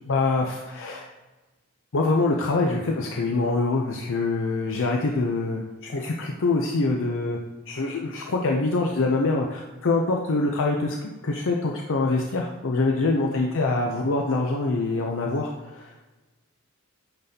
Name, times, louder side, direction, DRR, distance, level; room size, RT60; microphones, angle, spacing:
voice 1, 0.1-1.1 1.9-7.4 7.7-15.9, left 3 dB, 60° left, 1 dB, 0.6 m, -25 dB
8.5 x 4.0 x 2.8 m, 1.2 s
head